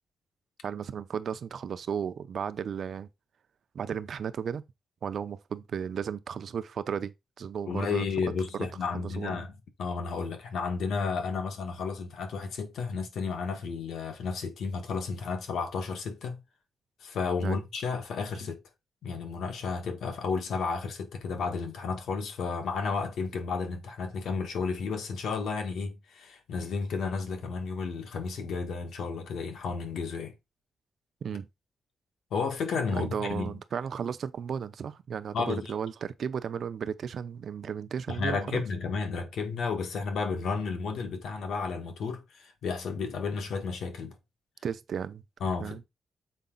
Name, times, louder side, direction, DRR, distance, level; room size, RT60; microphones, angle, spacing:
voice 1, 0.6-3.1 3.7-4.6 5.0-8.1 8.5-8.7 8.9-9.4 17.4-17.6 31.2-31.5 32.9-38.6 44.6-45.2 45.6-45.8, right 7 dB, 60° right, 0.6 m, -34 dB
voice 2, 7.7-9.5 9.8-16.4 17.0-18.6 19.0-30.3 32.3-33.6 35.3-35.7 38.1-44.2 45.4-45.9, left 5 dB, 80° left, 1.6 m, -32 dB
7.0 x 4.9 x 3.9 m
cardioid pair, 125°, 0 cm